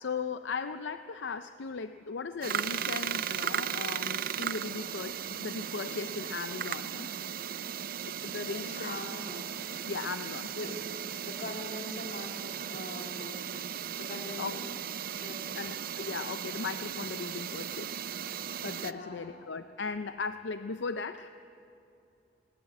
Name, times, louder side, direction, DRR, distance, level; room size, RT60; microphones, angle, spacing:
voice 1, 0.0-7.1 8.1-9.0 9.9-10.5 14.4-14.6 15.5-21.3, left 5 dB, 80° left, 10 dB, 0.5 m, -37 dB
sound 1, 2.4-18.9, right 9 dB, 55° right, 0.5 m, -36 dB
voice 2, 8.5-9.5 10.5-10.9 11.2-14.7 15.1-15.5 18.8-19.4, left 1 dB, 60° left, 1 dB, 3.0 m, -42 dB
20.0 x 19.5 x 8.6 m, 2.7 s
head